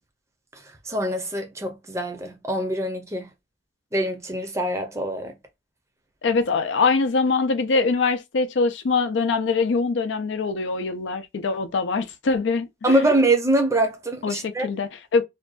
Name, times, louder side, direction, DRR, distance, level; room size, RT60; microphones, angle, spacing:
voice 1, 0.9-3.3 3.9-5.3 12.8-14.7, right 1 dB, 15° right, 0.6 m, -24 dB
voice 2, 6.2-13.0 14.2-15.2, left 4 dB, 85° left, 0.5 m, -23 dB
2.6 x 2.2 x 2.4 m
head